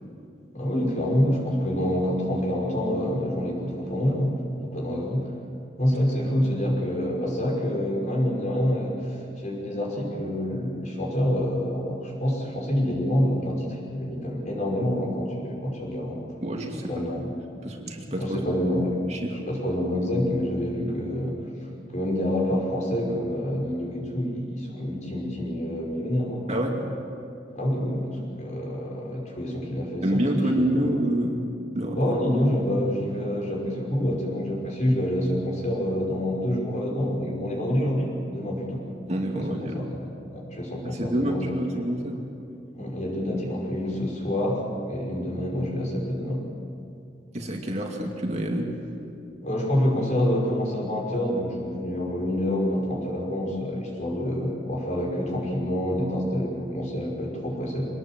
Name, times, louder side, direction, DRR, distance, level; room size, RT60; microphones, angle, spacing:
voice 1, 0.5-4.3 4.6-5.3 5.8-16.2 16.9-17.2 18.2-18.9 19.5-21.4 21.9-26.8 27.5-30.1 30.3-30.8 31.9-38.8 39.3-40.1 40.3-41.6 42.8-46.4 49.4-57.9, equal, 45° left, -2 dB, 5.6 m, -27 dB
voice 2, 16.4-16.9 17.6-18.4 19.1-19.4 26.5-26.8 30.0-31.4 31.7-32.2 39.1-39.8 40.8-42.2 47.3-48.7, right 1 dB, 40° right, 1 dB, 2.4 m, -27 dB
24.5 x 19.5 x 7.6 m, 2.6 s
head